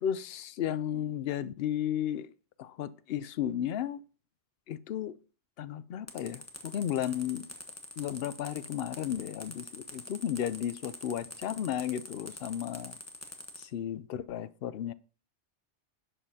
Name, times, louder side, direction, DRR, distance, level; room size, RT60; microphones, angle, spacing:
voice 1, 0.0-2.3 2.6-4.0 4.7-5.1 5.6-7.5 8.0-13.0 13.6-14.9, left 10 dB, 65° left, 0.7 m, -34 dB
sound 1, 6.1-13.6, left 1 dB, 15° left, 1.0 m, -45 dB
11.0 x 7.5 x 2.8 m
omnidirectional pair, 1.2 m